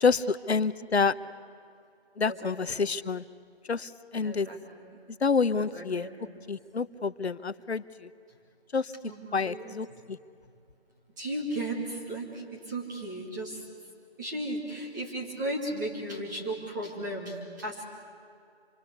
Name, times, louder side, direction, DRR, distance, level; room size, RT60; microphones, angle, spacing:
voice 1, 0.0-1.1 2.2-3.2 3.7-4.5 5.2-6.1 6.5-8.1 8.7-8.9 9.3-10.2, left 5 dB, 80° left, 14 dB, 1.0 m, -28 dB
voice 2, 2.2-2.9 4.2-5.0 5.6-6.4 9.0-9.8 11.2-13.6 14.2-17.8, right 1 dB, 20° right, -3 dB, 2.6 m, -36 dB
26.5 x 23.0 x 8.1 m, 2.5 s
figure-of-eight pair, 170°, 32 cm